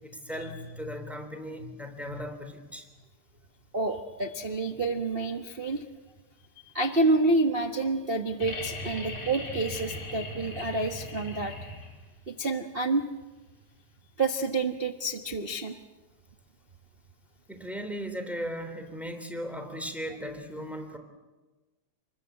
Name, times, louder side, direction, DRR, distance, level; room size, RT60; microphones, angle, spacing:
voice 1, 0.0-2.9 17.5-21.0, equal, ahead, 6 dB, 3.0 m, -37 dB
voice 2, 3.7-5.8 6.7-11.5 12.3-13.1 14.2-15.8, right 2 dB, 65° right, 4 dB, 0.5 m, -28 dB
sound 1, 8.4-12.2 13.9-14.0, left 1 dB, 85° left, 5.9 m, -38 dB
28.5 x 21.5 x 8.2 m, 1.2 s
omnidirectional pair, 3.4 m